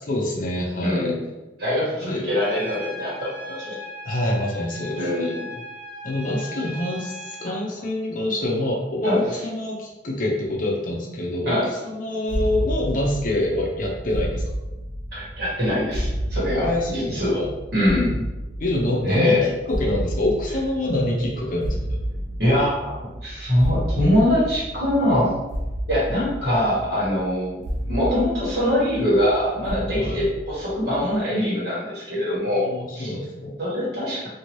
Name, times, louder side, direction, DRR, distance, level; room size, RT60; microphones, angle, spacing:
voice 1, 0.1-1.1 2.0-2.2 4.0-5.1 6.0-14.4 16.5-17.5 18.6-21.8 29.9-30.2 32.6-33.6, left 1 dB, 45° left, -2 dB, 0.6 m, -26 dB
voice 2, 0.8-1.2 1.6-3.8 5.0-5.5 7.5-7.6 9.0-9.2 11.4-11.7 15.1-17.4 17.7-18.2 19.0-19.5 22.4-25.4 25.9-33.1 33.6-34.3, left 1 dB, 55° right, -7 dB, 1.4 m, -23 dB
Trumpet, 2.4-7.6, equal, 40° right, 1.4 m, -38 dB
sound 1, 12.3-31.2, equal, 85° right, 0.5 m, -31 dB
2.8 x 2.6 x 3.0 m, 1.1 s
head